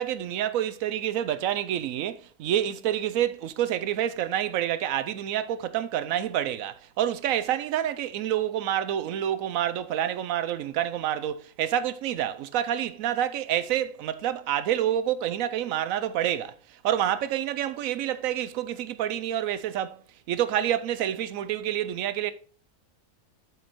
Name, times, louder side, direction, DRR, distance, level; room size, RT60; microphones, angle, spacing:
voice 1, 0.0-16.5 16.8-20.0 20.3-22.3, right 11 dB, 70° right, 0.9 m, -28 dB
8.0 x 4.9 x 4.4 m
omnidirectional pair, 1.6 m